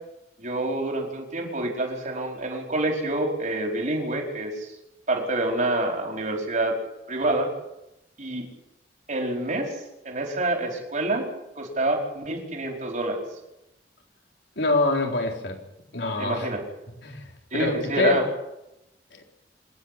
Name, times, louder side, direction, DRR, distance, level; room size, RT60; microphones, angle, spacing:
voice 1, 0.4-4.7 5.1-6.7 7.1-7.5 8.2-8.4 9.1-9.8 10.0-11.3 11.6-13.2 16.2-16.6 17.5-18.2, right 2 dB, 45° right, 1 dB, 4.9 m, -27 dB
voice 2, 14.6-15.6 15.9-16.5 17.0-17.2 17.5-18.2 19.1-19.2, left 2 dB, 80° left, 2 dB, 4.1 m, -25 dB
27.0 x 10.5 x 9.4 m, 0.88 s
head